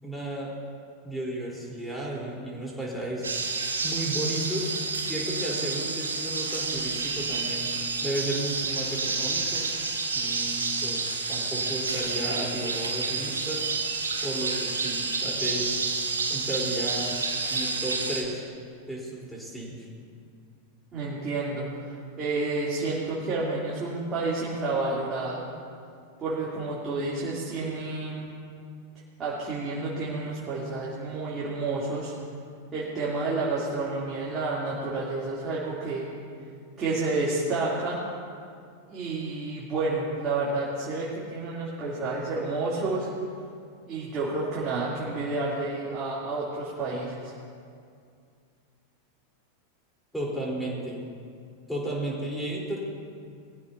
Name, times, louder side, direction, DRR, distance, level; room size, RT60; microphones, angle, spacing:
voice 1, 0.0-0.5 1.0-3.3 3.8-4.7 5.0-7.7 8.0-9.6 10.1-13.7 14.2-15.8 16.3-17.2 17.5-18.4 18.9-19.9 50.1-50.9 51.7-52.8, right 1 dB, 5° left, -4 dB, 4.1 m, -33 dB
sound 1, 3.2-18.2, right 4 dB, 70° right, 1.8 m, -29 dB
voice 2, 20.9-25.5 26.2-28.2 29.2-32.1 32.7-36.1 36.8-38.0 38.9-43.1 43.9-47.3, right 3 dB, 25° right, -7 dB, 3.2 m, -30 dB
21.0 x 15.0 x 2.9 m, 2.3 s
figure-of-eight pair, 90°, 0 cm